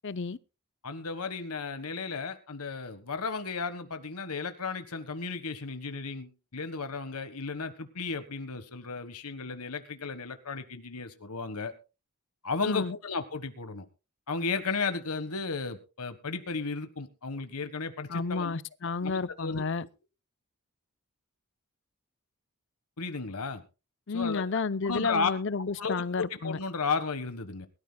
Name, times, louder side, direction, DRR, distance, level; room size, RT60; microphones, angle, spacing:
voice 1, 0.0-0.4 12.6-13.0 18.1-19.8 24.1-26.6, left 4 dB, 55° left, 0.7 m, -31 dB
voice 2, 0.8-11.7 12.4-13.8 14.3-18.5 18.8-19.6 23.0-23.6 24.1-24.4 24.8-25.3 25.8-27.7, left 4 dB, 90° left, 1.5 m, -34 dB
22.0 x 13.0 x 2.3 m
head